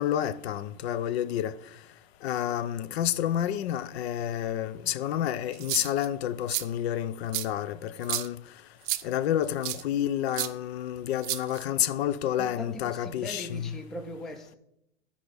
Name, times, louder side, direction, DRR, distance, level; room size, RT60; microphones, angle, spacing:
voice 1, 0.0-1.6 2.2-8.4 9.0-13.8, left 11 dB, 60° left, 0.6 m, -29 dB
sound 1, 5.5-6.1 6.5-6.6 7.3-7.5 8.0-8.3 8.9-9.0 9.6-9.8 10.3-10.5 11.2-11.8, right 16 dB, 45° right, 0.6 m, -31 dB
voice 2, 12.4-14.5, equal, ahead, 0.3 m, -40 dB
10.0 x 5.0 x 5.1 m
hypercardioid pair, 130°, 36 cm